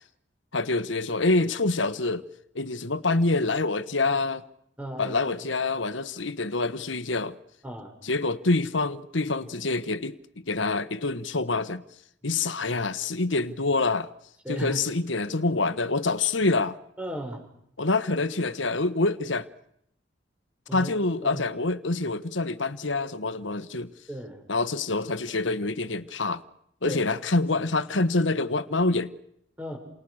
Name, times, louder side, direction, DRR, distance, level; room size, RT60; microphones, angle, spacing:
voice 1, 0.5-2.2 2.5-4.4 5.0-7.4 8.0-10.2 10.5-11.8 12.2-14.1 14.5-16.8 17.8-19.5 20.7-23.9 24.5-26.4 26.8-29.1, left 3 dB, 80° left, 1.4 m, -26 dB
voice 2, 4.8-5.4 7.6-7.9 14.4-14.8 17.0-17.4 20.7-20.9 21.2-21.5 24.1-24.4 26.8-27.0 29.6-29.8, right 1 dB, 5° right, 6.3 m, -35 dB
29.5 x 28.0 x 6.5 m
head